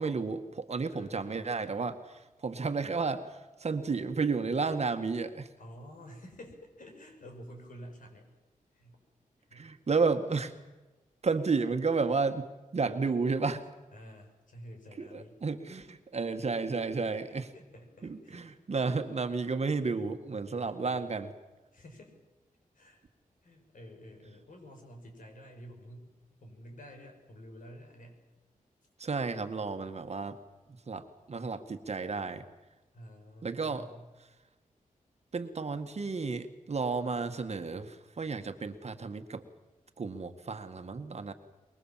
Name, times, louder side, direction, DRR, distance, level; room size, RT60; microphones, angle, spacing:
voice 1, 0.0-3.3 3.6-5.5 9.5-10.5 11.2-12.5 12.7-13.6 15.0-17.5 18.0-21.3 29.0-30.4 30.9-32.4 33.4-33.9 35.3-39.4 40.0-41.3, right 4 dB, 50° right, 7 dB, 1.8 m, -32 dB
voice 2, 0.9-1.9 5.6-8.3 8.7-9.0 9.5-9.7 13.9-15.4 17.3-18.5 20.5-21.1 21.7-22.1 22.7-23.0 23.4-26.1 26.4-28.2 32.9-34.1, equal, 65° left, 4 dB, 6.3 m, -50 dB
23.5 x 22.5 x 7.5 m, 1.1 s
wide cardioid pair, 110°, 14 cm